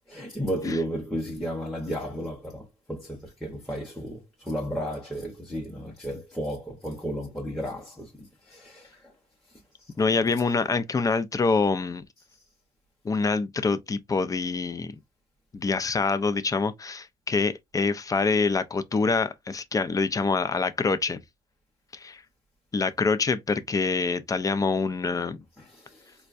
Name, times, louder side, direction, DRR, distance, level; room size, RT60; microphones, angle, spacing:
voice 1, 0.1-9.1 9.8-9.9 25.6-26.1, equal, ahead, 0.8 m, -33 dB
voice 2, 10.0-12.0 13.0-14.9 15.5-21.2 21.9-22.2 22.7-25.4, left 4 dB, 20° left, 0.4 m, -25 dB
4.3 x 2.2 x 2.5 m
cardioid pair, 110°, 17 cm